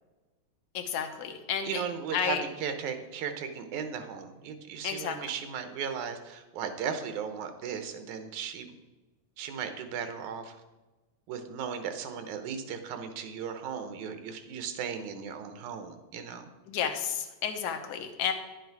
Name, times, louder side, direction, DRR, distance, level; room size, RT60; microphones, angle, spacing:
voice 1, 0.7-1.8 2.1-2.4 4.8-5.2 16.7-18.3, left 8 dB, 85° left, 5 dB, 2.5 m, -31 dB
voice 2, 1.6-8.7 9.4-10.6 11.3-16.5, right 7 dB, 80° right, 8 dB, 2.4 m, -36 dB
11.0 x 7.7 x 4.6 m, 1.1 s
omnidirectional pair, 3.4 m